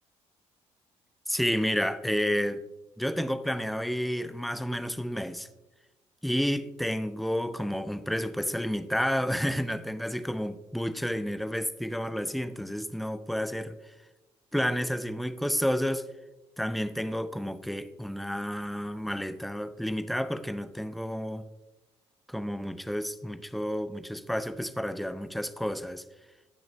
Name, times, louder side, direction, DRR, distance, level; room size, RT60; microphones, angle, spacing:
voice 1, 1.3-2.6 3.0-5.5 6.2-13.9 14.5-16.0 16.6-21.4 22.3-26.0, equal, ahead, 0.5 m, -30 dB
14.0 x 6.3 x 2.2 m
figure-of-eight pair, 45°, 15 cm